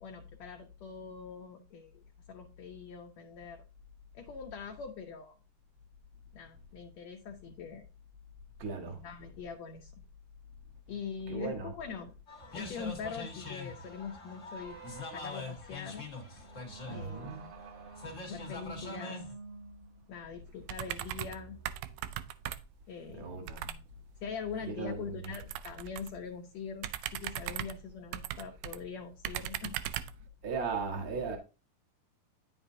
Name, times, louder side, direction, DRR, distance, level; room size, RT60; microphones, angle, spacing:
voice 1, 0.0-3.6 4.1-5.3 6.3-7.8 8.9-9.9 10.9-12.1 12.5-14.8 15.1-16.1 16.9-17.4 18.3-19.2 20.1-21.6 22.9-23.4 24.2-29.8, left 6 dB, 75° left, 1.6 m, -43 dB
voice 2, 8.6-9.0 11.3-11.7 16.9-17.5 23.2-23.8 24.7-25.3 30.4-31.4, right 4 dB, 50° right, 1.0 m, -37 dB
sound 1, 12.3-19.3, left 3 dB, 55° left, 0.8 m, -44 dB
sound 2, 14.6-22.4, right 5 dB, 70° right, 2.5 m, -50 dB
sound 3, 20.7-21.4 21.7-22.8 23.5-23.8 25.2-26.2 26.8-28.8 29.2-30.2, right 12 dB, 85° right, 2.4 m, -39 dB
9.7 x 7.1 x 2.7 m
omnidirectional pair, 4.2 m